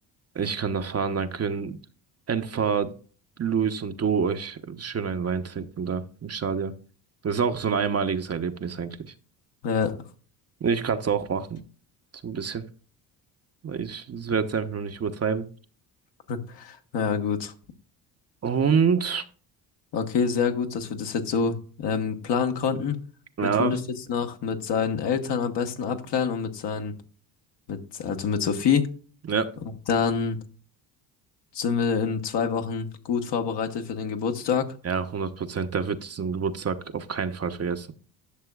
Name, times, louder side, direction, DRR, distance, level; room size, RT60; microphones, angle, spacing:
voice 1, 0.3-1.8 2.3-2.9 3.4-6.7 7.2-9.1 10.6-11.6 12.2-12.6 13.6-15.5 18.4-19.2 23.4-23.8 29.3-29.5 34.8-37.9, right 6 dB, 30° right, 0.8 m, -27 dB
voice 2, 9.6-10.0 14.3-14.4 16.3-17.5 19.9-23.0 23.6-23.8 24.1-26.9 27.7-28.9 29.9-30.4 31.5-34.7, left 6 dB, 60° left, 1.4 m, -26 dB
11.5 x 6.6 x 2.4 m
hypercardioid pair, 65°, 47 cm